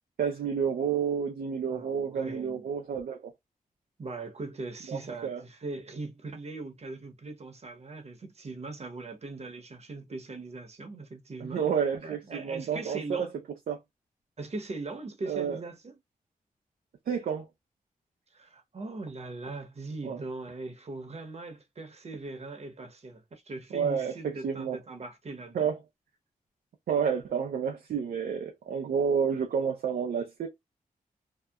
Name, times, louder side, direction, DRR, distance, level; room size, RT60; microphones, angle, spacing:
voice 1, 0.2-3.3 4.9-5.4 11.4-13.3 13.7-13.8 15.3-15.6 17.1-17.5 20.0-20.2 23.7-24.1 24.4-24.8 25.5-25.8 26.9-30.5, right 7 dB, 85° right, 0.5 m, -30 dB
voice 2, 1.7-2.6 4.0-11.6 12.0-13.3 14.4-16.0 18.3-25.7, right 3 dB, 45° right, 0.9 m, -40 dB
2.8 x 2.1 x 2.3 m
cardioid pair, 65°, 15 cm